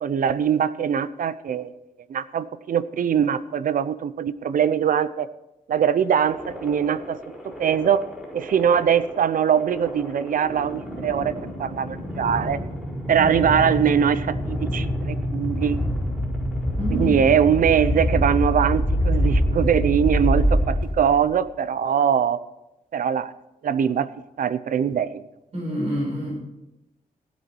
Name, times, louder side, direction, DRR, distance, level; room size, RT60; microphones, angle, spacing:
voice 1, 0.0-1.7 2.1-5.3 5.7-7.2 7.4-8.0 8.3-11.3 11.6-12.6 13.1-15.8 16.9-22.4 22.9-23.3 23.6-24.1 24.4-25.2, right 8 dB, 65° right, 15 dB, 0.6 m, -22 dB
sound 1, 6.2-21.3, equal, 5° right, 4.6 m, -26 dB
voice 2, 16.8-17.2 25.5-26.4, equal, 45° right, -3 dB, 5.1 m, -27 dB
16.0 x 8.1 x 4.6 m, 0.93 s
wide cardioid pair, 120°, 15 cm